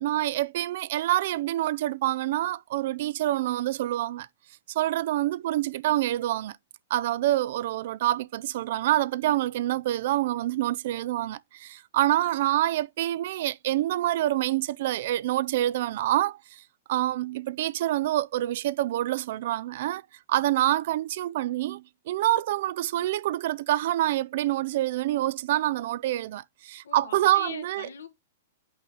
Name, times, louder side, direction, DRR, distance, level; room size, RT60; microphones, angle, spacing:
voice 1, 0.0-4.3 4.7-6.6 6.9-16.6 16.9-20.0 20.3-27.9, right 14 dB, 60° right, 0.3 m, -26 dB
voice 2, 26.8-28.1, left 7 dB, 90° left, 1.2 m, -41 dB
5.5 x 4.0 x 5.0 m
hypercardioid pair, 140°, 0 cm